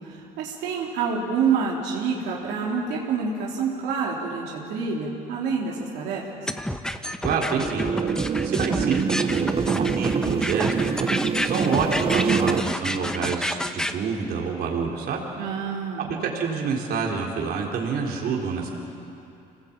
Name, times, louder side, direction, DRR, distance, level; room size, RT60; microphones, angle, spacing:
voice 1, 0.0-6.3 15.3-16.1, right 5 dB, 85° right, -3 dB, 3.5 m, -27 dB
sound 1, 6.5-13.9, left 1 dB, 5° left, 1.1 m, -29 dB
voice 2, 7.2-7.9 8.4-10.9 11.4-15.2 16.1-18.7, right 5 dB, 65° right, -1 dB, 3.9 m, -27 dB
sound 2, 7.6-12.6, right 6 dB, 35° right, 1.0 m, -25 dB
26.0 x 19.0 x 8.7 m, 2.7 s
cardioid pair, 110°, 17 cm